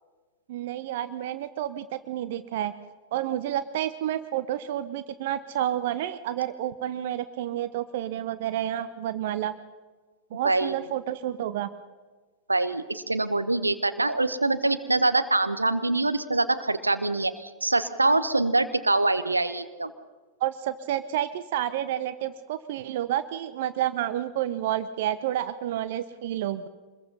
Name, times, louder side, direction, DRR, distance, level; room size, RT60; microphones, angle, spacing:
voice 1, 0.5-2.7 3.1-9.5 10.3-11.7 20.4-26.7, right 12 dB, 55° right, 13 dB, 0.9 m, -30 dB
voice 2, 10.4-10.8 12.5-19.9, right 2 dB, 80° right, 11 dB, 1.2 m, -24 dB
25.5 x 21.5 x 5.6 m, 1.3 s
figure-of-eight pair, 90°, 0 cm